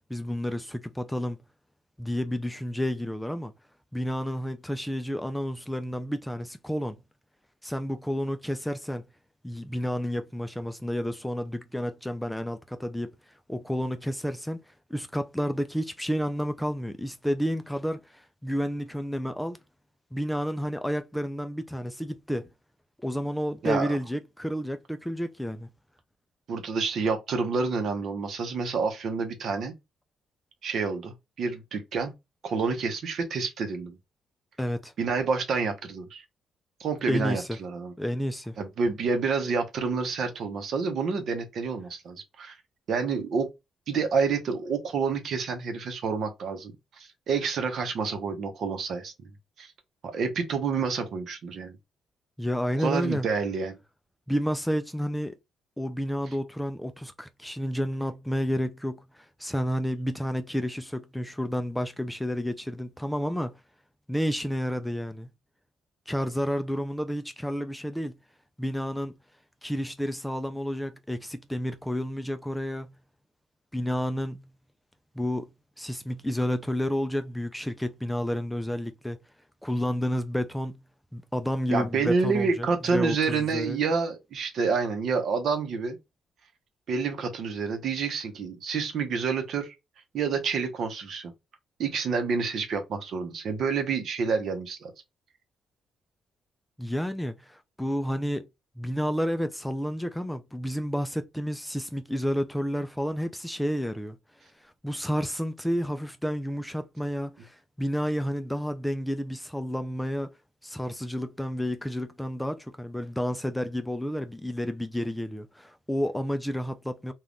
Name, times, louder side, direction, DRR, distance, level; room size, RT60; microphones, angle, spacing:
voice 1, 0.1-1.4 2.0-3.5 3.9-7.0 7.6-9.0 9.4-13.1 13.5-14.6 14.9-19.6 20.1-22.5 23.0-25.7 34.6-34.9 37.1-37.6 38.0-38.6 52.4-53.3 54.3-55.3 55.8-63.6 64.1-65.3 66.1-68.2 68.6-69.2 69.6-72.9 73.7-74.4 75.2-75.5 75.8-79.2 79.6-80.8 81.1-83.8 96.8-98.5 98.8-104.2 104.6-110.3 110.6-117.1, equal, 5° left, 0.3 m, -30 dB
voice 2, 26.5-29.7 30.6-32.1 32.4-34.0 35.0-36.2 36.8-37.9 38.6-42.5 42.9-43.5 43.9-46.7 47.0-49.1 49.6-49.7 50.0-51.8 52.8-53.8 81.7-86.0 86.9-89.7 90.1-91.3 91.8-94.9, right 5 dB, 65° right, 0.7 m, -28 dB
2.5 x 2.3 x 3.4 m
cardioid pair, 90°, 0 cm